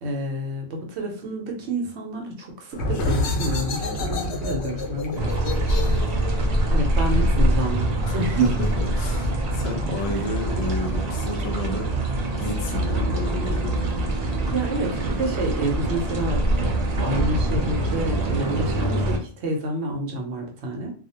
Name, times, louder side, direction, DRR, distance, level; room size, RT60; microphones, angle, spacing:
voice 1, 0.0-5.6 6.7-8.5 9.8-10.2 14.5-16.7 17.0-20.9, right 2 dB, 80° right, 2 dB, 0.9 m, -28 dB
sound 1, 2.7-8.1, left 2 dB, 90° left, 0.9 m, -29 dB
sound 2, 5.2-19.2, right 1 dB, 55° right, 0.5 m, -24 dB
voice 2, 8.0-12.0 12.4-13.9, left 1 dB, 55° left, 2 dB, 0.4 m, -31 dB
2.3 x 2.0 x 2.7 m, 0.42 s
omnidirectional pair, 1.1 m